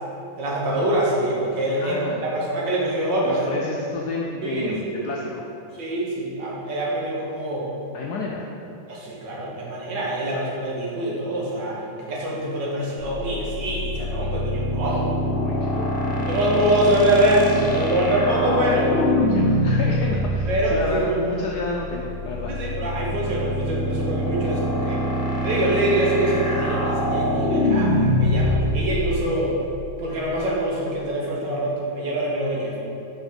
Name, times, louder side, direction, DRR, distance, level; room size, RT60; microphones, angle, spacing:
voice 1, 0.4-3.5 4.4-5.1 5.8-7.7 8.9-15.1 16.3-18.8 20.5-21.2 22.5-25.0 25.4-29.5 30.0-32.8, right 1 dB, 60° right, -4 dB, 1.8 m, -24 dB
voice 2, 1.8-2.2 3.2-5.5 7.9-8.5 15.3-16.3 18.5-22.5, left 3 dB, 75° left, -1 dB, 0.9 m, -30 dB
sound 1, 13.0-30.2, left 1 dB, 40° left, 0.8 m, -24 dB
6.0 x 4.8 x 5.2 m, 2.7 s
omnidirectional pair, 2.3 m